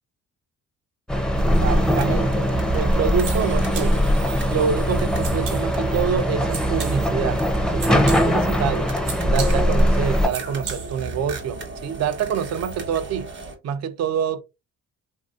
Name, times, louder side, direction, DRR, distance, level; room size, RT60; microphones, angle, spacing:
sound 1, 1.1-10.3, equal, ahead, 0.4 m, -21 dB
sound 2, 1.3-13.6, right 3 dB, 40° right, 1.0 m, -34 dB
voice 1, 1.6-2.5 2.7-4.0 4.5-8.9 9.2-13.3 13.6-14.4, right 7 dB, 60° right, 0.5 m, -26 dB
sound 3, 2.9-11.2, right 5 dB, 85° right, 1.1 m, -38 dB
3.1 x 2.6 x 2.3 m
cardioid pair, 90°, 30 cm